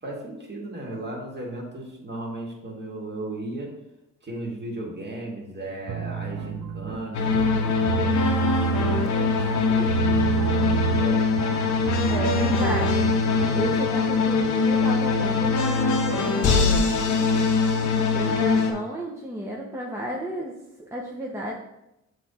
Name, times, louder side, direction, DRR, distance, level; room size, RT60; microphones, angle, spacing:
voice 1, 0.0-3.7 4.2-11.3, right 1 dB, 35° right, -2 dB, 2.1 m, -36 dB
sound 1, 5.9-13.8, right 9 dB, 70° right, 0.8 m, -29 dB
sound 2, 7.1-18.7, left 4 dB, 75° left, 1.0 m, -22 dB
voice 2, 12.1-13.1 13.5-16.9 18.1-20.5 20.8-21.5, right 1 dB, 10° right, -3 dB, 1.0 m, -32 dB
7.4 x 3.9 x 4.3 m, 0.88 s
cardioid pair, 90°, 30 cm